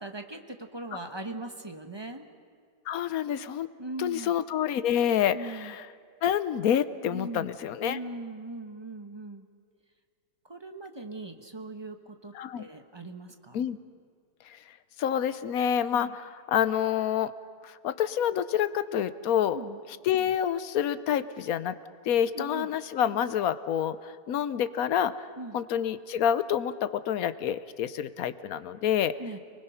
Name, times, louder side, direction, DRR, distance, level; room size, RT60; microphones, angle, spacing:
voice 1, 0.0-2.3 3.8-4.3 5.3-5.7 7.1-7.5 7.8-9.5 10.4-13.6 15.9-16.2 19.5-19.8 22.3-22.7 25.4-25.6 29.2-29.4, right 2 dB, 20° right, 6 dB, 1.0 m, -40 dB
voice 2, 2.9-3.7 4.0-5.8 6.2-8.0 12.3-12.7 13.5-13.8 14.5-14.6 15.0-17.3 17.6-19.6 20.0-21.7 22.0-25.3 25.5-29.1, left 9 dB, 65° left, 14 dB, 1.1 m, -28 dB
29.0 x 20.0 x 5.7 m, 2.1 s
omnidirectional pair, 1.8 m